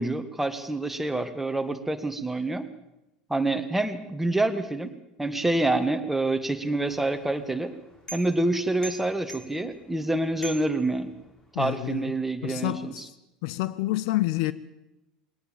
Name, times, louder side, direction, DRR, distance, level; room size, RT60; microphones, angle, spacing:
voice 1, 0.0-2.7 3.3-4.9 5.2-7.7 8.1-11.1 11.6-13.1, right 2 dB, 5° right, 1.8 m, -27 dB
sound 1, 6.9-11.6, right 1 dB, 15° left, 4.1 m, -46 dB
voice 2, 11.5-12.1 12.4-13.1 13.4-14.5, left 17 dB, 55° left, 0.6 m, -28 dB
21.0 x 18.0 x 7.4 m
figure-of-eight pair, 75°, 4 cm